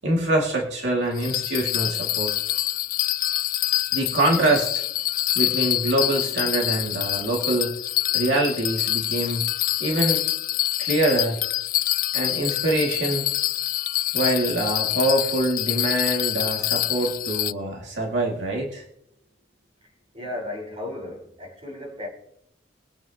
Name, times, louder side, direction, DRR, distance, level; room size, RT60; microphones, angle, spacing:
voice 1, 0.0-2.4 3.9-4.8 5.4-7.7 8.1-9.4 9.8-10.2 10.8-11.4 12.1-13.2 14.1-18.8, right 1 dB, 75° right, 2.4 m, -24 dB
Bell, 1.2-17.5, left 14 dB, 45° left, 0.3 m, -26 dB
voice 2, 20.1-22.1, left 1 dB, 35° right, 4.4 m, -34 dB
22.0 x 8.9 x 2.9 m
head